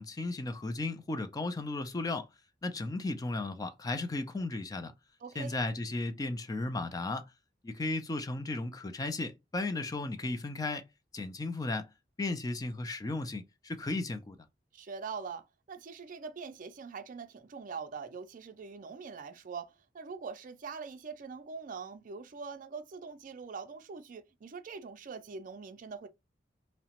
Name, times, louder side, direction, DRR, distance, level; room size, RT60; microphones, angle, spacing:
voice 1, 0.0-2.3 2.6-4.9 5.4-7.2 7.6-10.8 11.1-11.9 12.2-14.4, left 2 dB, 20° left, 0.4 m, -35 dB
voice 2, 5.2-5.6 14.7-26.1, right 5 dB, 50° right, 0.4 m, -43 dB
2.8 x 2.1 x 2.8 m
head